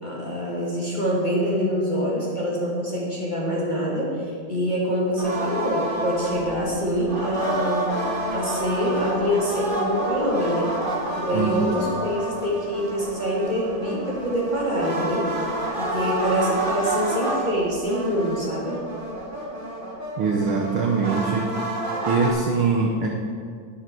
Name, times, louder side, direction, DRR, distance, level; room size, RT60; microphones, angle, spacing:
voice 1, 0.0-7.9 8.3-10.7 11.2-15.3 15.8-18.8, equal, 20° left, -5 dB, 1.6 m, -25 dB
sound 1, 5.2-22.3, right 1 dB, 35° right, 0.8 m, -29 dB
voice 2, 11.3-11.6 20.2-21.6 22.1-23.1, right 5 dB, 75° right, 2 dB, 1.2 m, -22 dB
11.5 x 10.0 x 4.6 m, 2.1 s
omnidirectional pair, 3.5 m